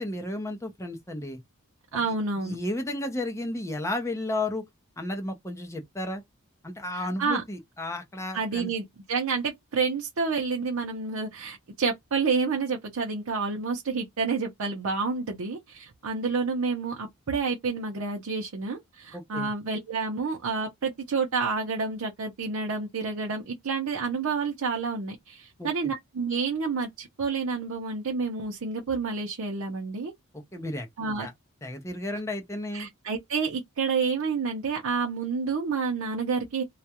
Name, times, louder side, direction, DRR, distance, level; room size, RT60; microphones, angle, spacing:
voice 1, 0.0-1.4 1.9-2.0 2.4-4.6 5.0-6.2 6.6-8.7 19.1-19.5 25.6-25.9 30.3-30.9 31.2-31.3 31.6-32.9, left 1 dB, 15° left, 0.5 m, -33 dB
voice 2, 1.9-2.6 6.9-7.4 8.3-30.1 31.0-31.3 32.7-36.6, right 4 dB, 70° right, 0.6 m, -29 dB
2.3 x 2.1 x 2.8 m
head